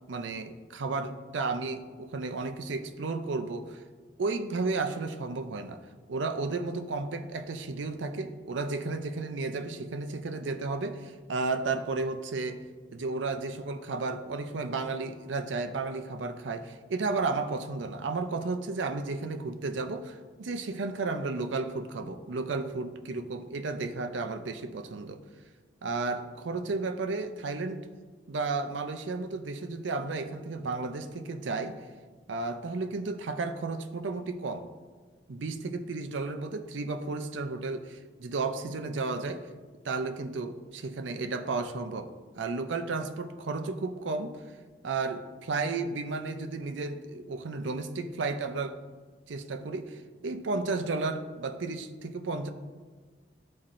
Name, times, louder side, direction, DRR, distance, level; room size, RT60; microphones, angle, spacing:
voice 1, 0.1-3.8 4.2-5.8 6.1-12.6 12.9-25.2 25.8-27.8 28.3-31.8 32.3-34.7 35.3-39.4 39.8-42.1 42.4-44.4 44.8-48.8 49.3-52.5, right 3 dB, 85° right, 8 dB, 0.5 m, -33 dB
11.5 x 4.3 x 2.5 m, 1.4 s
head